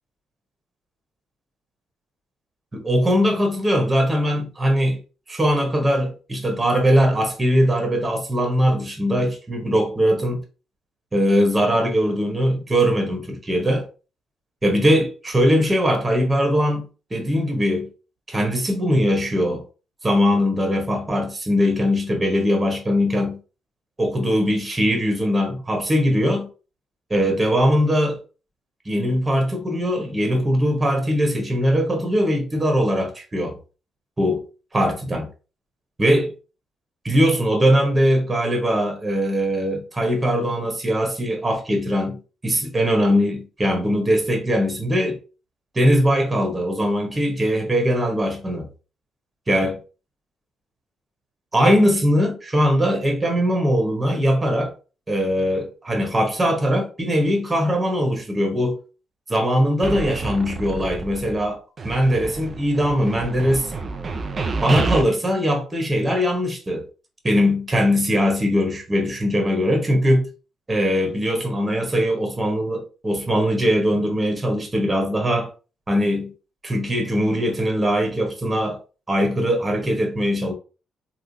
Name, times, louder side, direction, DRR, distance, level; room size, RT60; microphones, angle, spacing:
voice 1, 2.7-5.0 5.3-10.4 11.1-13.9 14.6-17.9 18.3-19.6 20.0-23.4 24.0-26.5 27.1-28.2 28.8-33.6 34.2-34.4 34.7-35.3 36.0-36.3 37.0-45.2 45.7-48.7 49.5-49.8 51.5-54.7 55.1-58.8 59.3-61.6 61.8-63.7 64.6-66.9 67.2-70.3 70.7-75.5 75.9-76.3 76.6-78.8 79.1-80.5, equal, 25° right, 1.3 m, -21 dB
sound 1, 59.8-61.5 61.8-65.0, right 3 dB, 45° right, 0.5 m, -28 dB
3.6 x 2.3 x 2.8 m
hypercardioid pair, 45°, 0 cm